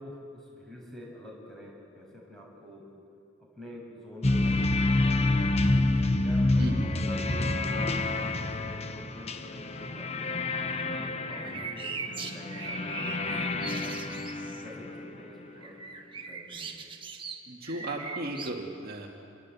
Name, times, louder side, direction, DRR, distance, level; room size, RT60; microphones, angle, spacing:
voice 1, 0.0-2.8 3.4-4.7 6.2-10.4 10.8-14.0 14.6-15.8 16.1-16.8, left 1 dB, ahead, -3 dB, 6.6 m, -47 dB
sound 1, 4.2-15.1, left 2 dB, 30° left, 1.1 m, -28 dB
voice 2, 6.6-6.9 11.4-11.6 17.5-19.1, right 1 dB, 50° right, -1 dB, 2.2 m, -36 dB
sound 2, 11.3-14.6 15.6-18.5, right 4 dB, 25° right, 1.5 m, -40 dB
27.5 x 22.5 x 8.5 m, 2.6 s
head